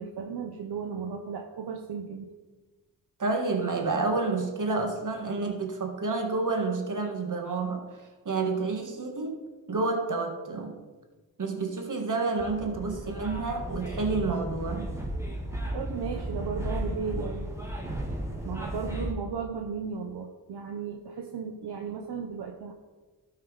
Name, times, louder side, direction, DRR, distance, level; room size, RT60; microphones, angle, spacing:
voice 1, 0.0-2.3 15.7-17.5 18.4-22.7, right 6 dB, 80° right, 4 dB, 0.8 m, -35 dB
voice 2, 3.2-7.8 8.2-9.4 9.7-10.7 11.4-14.9, right 3 dB, 50° right, 4 dB, 1.7 m, -29 dB
sound 1, 12.4-19.1, right 1 dB, 5° right, 1.8 m, -34 dB
13.0 x 4.8 x 4.7 m, 1.3 s
cardioid pair, 60°, 39 cm